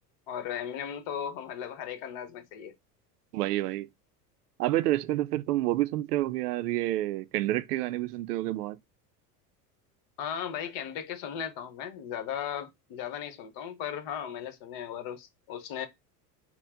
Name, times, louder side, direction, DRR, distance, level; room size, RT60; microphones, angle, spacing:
voice 1, 0.3-2.7 10.2-15.9, left 9 dB, 55° left, 1.0 m, -36 dB
voice 2, 3.3-3.9 4.6-8.8, right 15 dB, 70° right, 0.5 m, -28 dB
4.4 x 2.1 x 3.5 m
hypercardioid pair, 80°, 48 cm